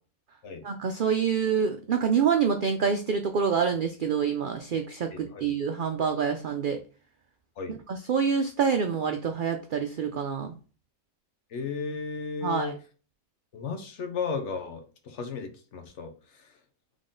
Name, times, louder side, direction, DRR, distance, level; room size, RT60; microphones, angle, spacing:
voice 1, 0.6-6.8 7.7-10.5 12.4-12.7, right 6 dB, 80° right, 6 dB, 0.4 m, -27 dB
voice 2, 5.1-5.5 7.6-7.8 11.5-12.7 13.5-16.5, left 5 dB, 60° left, 5 dB, 1.1 m, -35 dB
3.9 x 3.6 x 3.7 m, 0.37 s
omnidirectional pair, 1.4 m